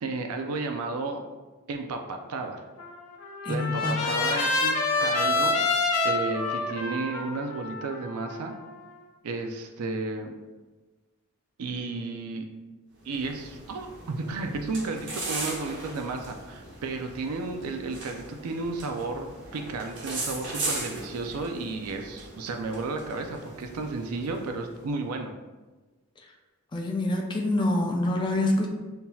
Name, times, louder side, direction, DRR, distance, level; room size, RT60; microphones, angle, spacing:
voice 1, 0.0-1.2 1.7-2.6 3.5-5.6 6.0-8.5 9.2-10.4 11.6-12.5 13.0-25.3, right 3 dB, 90° right, 5 dB, 0.4 m, -33 dB
Trumpet, 2.8-9.0, left 3 dB, 75° left, 0.6 m, -28 dB
voice 2, 3.4-4.6 26.7-28.7, left 1 dB, 20° left, 2 dB, 0.4 m, -27 dB
sound 1, 13.0-24.8, right 2 dB, 55° right, 0.9 m, -38 dB
5.7 x 2.7 x 2.3 m, 1.2 s
head